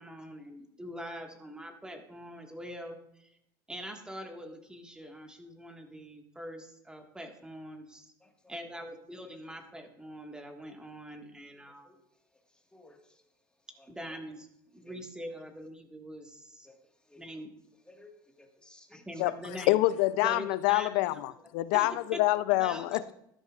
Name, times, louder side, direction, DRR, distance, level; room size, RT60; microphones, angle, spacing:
voice 1, 0.0-3.4 3.7-8.1 8.5-11.9 13.9-14.5 14.7-16.7 17.2-17.5 19.0-19.8 20.2-21.2 21.7-22.2 22.5-23.1, equal, 5° right, 1.7 m, -43 dB
voice 2, 8.2-8.5 11.8-12.0 12.7-13.2 13.8-14.2 14.8-15.0 16.6-16.8 17.1-17.2 17.9-19.1, left 2 dB, 10° left, 1.7 m, -57 dB
voice 3, 19.7-23.1, left 17 dB, 65° left, 0.5 m, -26 dB
12.5 x 10.5 x 2.5 m
hypercardioid pair, 90°, 11 cm